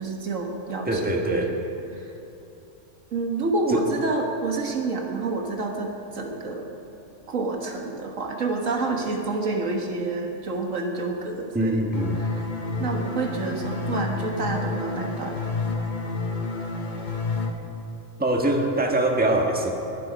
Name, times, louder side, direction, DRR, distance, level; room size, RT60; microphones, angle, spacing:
voice 1, 0.0-1.5 1.9-2.1 3.1-6.7 7.3-11.8 12.2-12.5 12.8-15.4, right 3 dB, 85° right, 2 dB, 2.0 m, -28 dB
voice 2, 0.9-1.6 3.7-3.8 11.5-12.2 18.2-19.7, right 1 dB, 5° right, 1 dB, 1.4 m, -23 dB
sound 1, 11.9-17.5, left 3 dB, 40° left, 1.1 m, -29 dB
21.0 x 11.5 x 5.1 m, 2.9 s
omnidirectional pair, 1.3 m